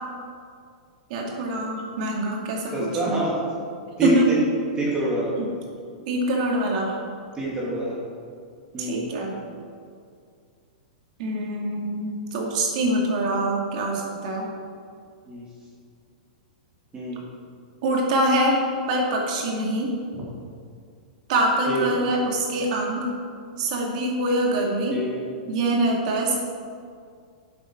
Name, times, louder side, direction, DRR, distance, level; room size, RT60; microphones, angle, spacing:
voice 1, 1.1-3.2 4.0-4.3 5.4-5.5 6.1-7.0 8.8-9.3 11.2-14.5 17.8-18.6 18.9-19.9 21.3-23.1 23.6-25.0 25.5-26.4, right 1 dB, 55° right, -1 dB, 2.6 m, -24 dB
voice 2, 2.7-3.3 4.0-4.4 4.8-5.4 7.3-8.0 8.7-9.1 15.3-15.4 16.9-17.2 21.7-22.0 24.9-25.2, right 2 dB, 20° right, -6 dB, 2.4 m, -26 dB
10.5 x 7.7 x 4.7 m, 2.2 s
hypercardioid pair, 135°, 5 cm